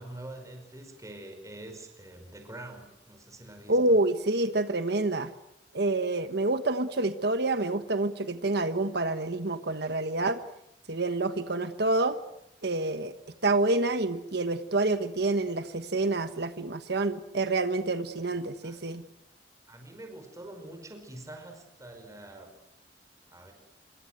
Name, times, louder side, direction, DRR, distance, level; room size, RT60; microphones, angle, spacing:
voice 1, 0.0-4.0 18.3-18.8 19.7-22.5 23.3-23.5, right 1 dB, 20° right, 5 dB, 5.2 m, -45 dB
voice 2, 3.7-5.3 5.7-10.4 10.9-12.2 12.6-13.1 13.4-19.0, right 2 dB, 65° right, 10 dB, 1.3 m, -27 dB
26.5 x 25.0 x 8.0 m, 0.81 s
head